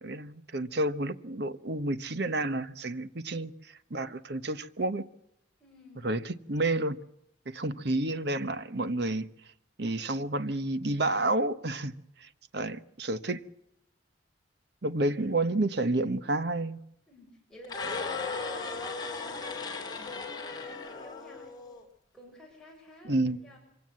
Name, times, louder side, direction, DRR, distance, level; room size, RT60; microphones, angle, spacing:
voice 1, 0.0-3.5 3.9-5.0 6.0-7.0 7.5-9.3 9.8-11.9 12.2-13.4 14.8-16.8 23.0-23.4, right 2 dB, 55° right, 1.0 m, -30 dB
voice 2, 5.6-6.2 7.7-7.9 17.1-21.5 22.1-23.6, left 1 dB, 5° left, 6.1 m, -53 dB
sound 1, 17.6-21.8, left 4 dB, 20° left, 3.1 m, -36 dB
25.0 x 17.0 x 7.7 m
head